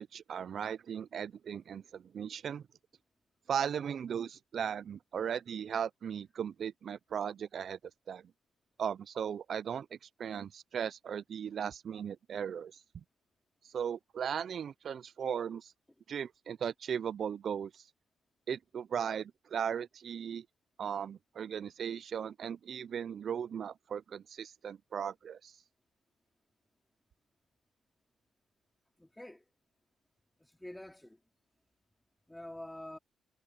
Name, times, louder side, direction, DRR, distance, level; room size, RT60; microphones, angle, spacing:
voice 1, 0.0-2.6 3.5-7.8 8.1-8.2 8.8-9.9 10.2-12.7 13.6-15.7 16.1-17.8 18.5-20.5 20.8-25.5, right 8 dB, 55° right, 0.4 m, -37 dB
voice 2, 29.0-29.4 30.4-31.2 32.3-33.0, left 1 dB, 5° left, 3.1 m, -47 dB
cardioid pair, 90°, 0 cm